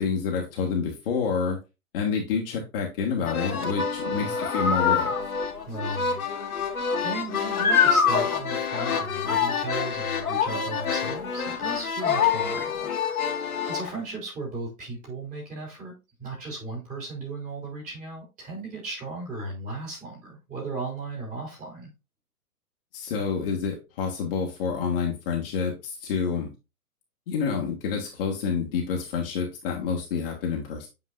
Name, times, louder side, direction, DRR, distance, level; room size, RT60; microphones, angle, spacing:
voice 1, 0.0-1.6 1.9-5.1 22.9-26.5 27.3-30.9, left 6 dB, 40° left, 0 dB, 1.6 m, -28 dB
sound 1, 3.3-13.9, left 6 dB, 70° left, 1.8 m, -26 dB
voice 2, 4.0-4.3 5.7-12.9 13.1-15.9 16.2-21.9, right 3 dB, 15° right, -3 dB, 3.3 m, -36 dB
8.0 x 4.8 x 2.5 m, 0.27 s
hypercardioid pair, 145°, 45 cm